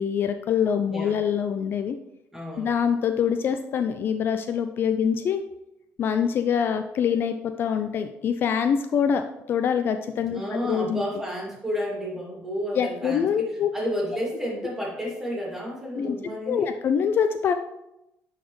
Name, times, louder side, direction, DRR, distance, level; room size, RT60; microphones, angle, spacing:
voice 1, 0.0-2.0 2.6-5.4 6.0-9.2 9.5-11.0 12.8-13.7 16.0-16.2 16.5-17.5, left 7 dB, 45° left, 8 dB, 0.3 m, -24 dB
voice 2, 0.9-1.2 2.3-2.8 10.3-13.5 13.7-16.7, equal, 5° right, -3 dB, 2.3 m, -31 dB
9.8 x 4.0 x 3.1 m, 0.89 s
cardioid pair, 125°, 5 cm